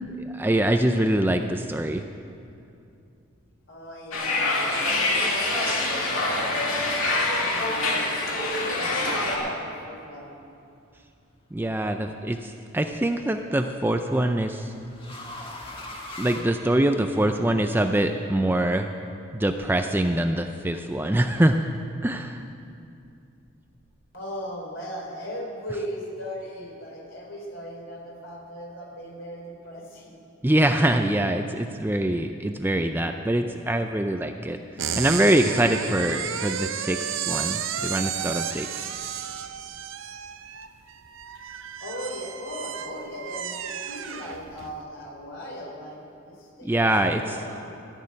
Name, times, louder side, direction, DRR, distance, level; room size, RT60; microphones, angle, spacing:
voice 1, 0.3-2.0 11.5-14.7 16.2-18.9 19.3-21.6 22.0-22.4 30.4-34.6 34.9-37.0 37.3-38.9 46.6-47.2, right 1 dB, 10° right, 6 dB, 0.4 m, -24 dB
voice 2, 3.7-10.3 24.1-30.2 41.8-47.7, equal, 60° left, -2 dB, 3.9 m, -38 dB
sound 1, 4.1-9.4, left 2 dB, 80° left, 2.5 m, -25 dB
sound 2, 11.4-11.9 13.3-17.3, left 1 dB, 25° left, 1.5 m, -41 dB
sound 3, 34.8-44.8, right 8 dB, 65° right, 0.7 m, -32 dB
15.0 x 6.7 x 9.7 m, 2.5 s
head